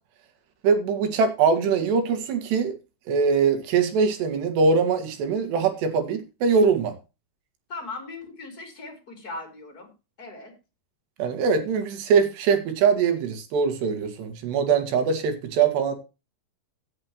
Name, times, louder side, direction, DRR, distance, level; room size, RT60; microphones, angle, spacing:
voice 1, 0.6-2.8 3.1-6.9 11.2-16.0, right 5 dB, 80° right, 8 dB, 4.1 m, -22 dB
voice 2, 7.7-9.9 10.2-10.5, left 3 dB, 25° left, 5 dB, 3.7 m, -38 dB
16.5 x 8.0 x 3.1 m, 0.29 s
omnidirectional pair, 4.8 m